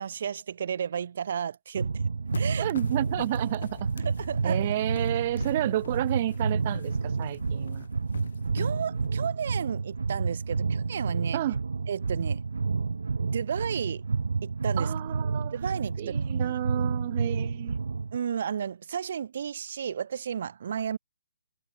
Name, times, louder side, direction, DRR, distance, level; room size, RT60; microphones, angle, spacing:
voice 1, 0.0-2.0 2.3-2.7 4.0-4.6 8.5-11.4 11.9-12.4 13.2-14.0 14.4-14.9 15.5-16.6 18.1-21.0, right 8 dB, 45° right, 1.7 m, -33 dB
sound 1, 1.8-18.2, right 4 dB, 80° right, 0.5 m, -30 dB
sound 2, 2.3-9.1, left 6 dB, 60° left, 6.9 m, -44 dB
voice 2, 2.6-3.9 4.4-7.9 11.3-11.6 14.8-15.5 16.0-17.8, right 14 dB, 30° right, 0.3 m, -30 dB
hypercardioid pair, 165°, 0 cm